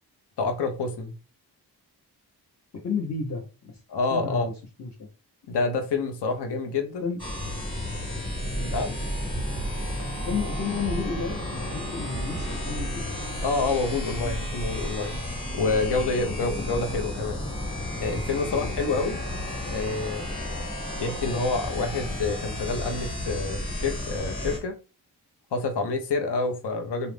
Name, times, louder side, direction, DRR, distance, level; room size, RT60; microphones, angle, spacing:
voice 1, 0.4-1.1 3.9-4.5 5.5-7.0 8.7-9.0 13.4-15.2 15.5-17.4 18.0-19.2 19.6-20.4 20.9-24.7 25.5-27.1, left 3 dB, 85° left, 5 dB, 0.7 m, -28 dB
voice 2, 2.8-3.8 4.1-5.1 7.0-7.2 8.5-8.7 10.3-13.0 18.4-19.0, left 5 dB, 40° left, -2 dB, 0.7 m, -32 dB
sound 1, 7.2-24.6, left 1 dB, 10° left, 1.1 m, -33 dB
sound 2, 8.3-14.8, right 3 dB, 35° right, 0.4 m, -37 dB
2.4 x 2.1 x 3.2 m, 0.32 s
cardioid pair, 65°, 40 cm